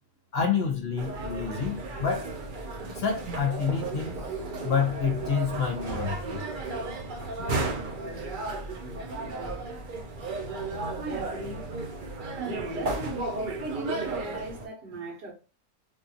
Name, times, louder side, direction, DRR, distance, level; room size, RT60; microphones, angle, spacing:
voice 1, 0.3-2.3 2.9-4.2 4.6-6.4 7.1-7.5, left 6 dB, 45° left, 0.9 m, -28 dB
sound 1, 1.0-14.7, right 3 dB, 60° right, 0.5 m, -34 dB
voice 2, 11.0-11.6 12.3-15.3, right 2 dB, 90° right, 1.8 m, -37 dB
3.5 x 2.5 x 2.8 m
omnidirectional pair, 1.7 m